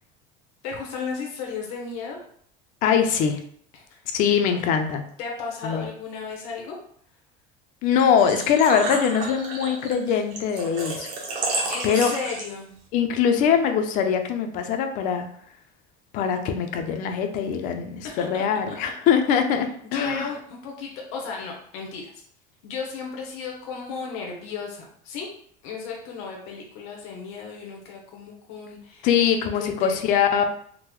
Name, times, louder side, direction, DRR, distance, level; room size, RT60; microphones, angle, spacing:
voice 1, 0.6-2.2 3.7-4.0 4.5-4.7 5.2-6.8 11.7-12.7 18.2-18.3 19.8-22.1 22.6-25.3 25.6-30.0, left 5 dB, 85° left, -1 dB, 0.8 m, -34 dB
voice 2, 2.8-3.4 4.1-5.0 5.6-5.8 7.8-11.1 11.8-12.1 12.9-15.3 16.1-20.3 29.0-30.5, left 7 dB, 45° left, 7 dB, 0.4 m, -22 dB
Engine / Trickle dribble / Fill (with liquid), 7.9-12.8, right 3 dB, 45° right, 0.8 m, -32 dB
3.6 x 2.0 x 3.0 m, 0.62 s
cardioid pair, 160°, 18 cm